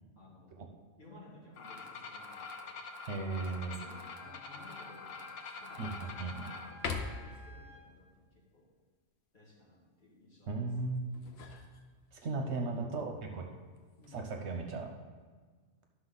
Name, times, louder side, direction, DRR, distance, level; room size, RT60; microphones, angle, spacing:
voice 1, 0.1-0.6 1.0-2.8 3.3-6.0 6.3-8.7 9.3-11.1 12.5-13.2 14.0-14.4, left 2 dB, 40° left, -5 dB, 2.1 m, -57 dB
sound 1, 1.6-6.7, left 4 dB, 85° left, 1.2 m, -46 dB
voice 2, 3.1-3.8 5.8-6.5 10.5-11.0 12.1-13.4 14.1-14.9, right 3 dB, 65° right, 3 dB, 1.1 m, -36 dB
Wind instrument woodwind instrument, 3.5-7.8, left 2 dB, ahead, 3.0 m, -54 dB
sound 2, 3.7-4.2 4.7-4.8 5.4-6.2 6.7-7.5 11.0-12.3 13.7-14.2, left 5 dB, 60° left, 1.0 m, -42 dB
11.5 x 6.2 x 4.0 m, 1.5 s
omnidirectional pair, 1.3 m